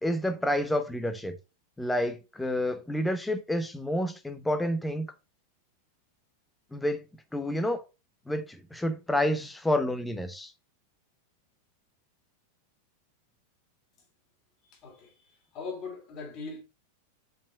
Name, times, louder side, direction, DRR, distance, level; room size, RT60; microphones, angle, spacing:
voice 1, 0.0-1.4 1.8-5.1 6.7-7.0 7.3-7.8 8.3-10.5, left 1 dB, 5° left, 1.0 m, -29 dB
voice 2, 14.6-16.6, left 4 dB, 35° left, 2.7 m, -41 dB
5.3 x 5.3 x 4.4 m
figure-of-eight pair, 90°, 0 cm